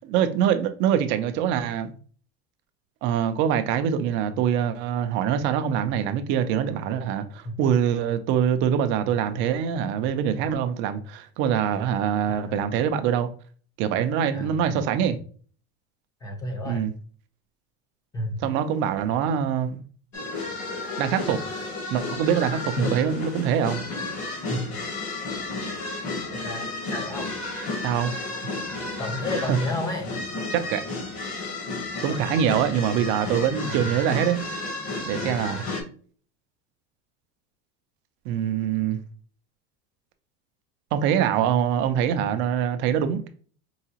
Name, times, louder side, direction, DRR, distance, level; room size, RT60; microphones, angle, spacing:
voice 1, 0.0-1.9 3.0-13.3 13.8-15.2 16.7-16.9 18.4-19.8 21.0-21.4 21.9-23.8 27.8-28.1 29.5-29.6 30.5-30.8 32.0-34.4 35.1-35.7 38.3-39.0 40.9-43.3, right 9 dB, 35° right, 0.4 m, -24 dB
voice 2, 12.3-12.8 14.3-15.1 16.2-16.9 18.1-18.4 22.8-22.9 24.5-24.6 26.3-27.3 29.0-30.1 33.7-33.9 35.2-35.7, left 1 dB, 10° left, 0.6 m, -32 dB
sound 1, 20.1-35.8, left 2 dB, 50° left, 1.2 m, -32 dB
4.7 x 2.8 x 2.8 m
cardioid pair, 170°, 32 cm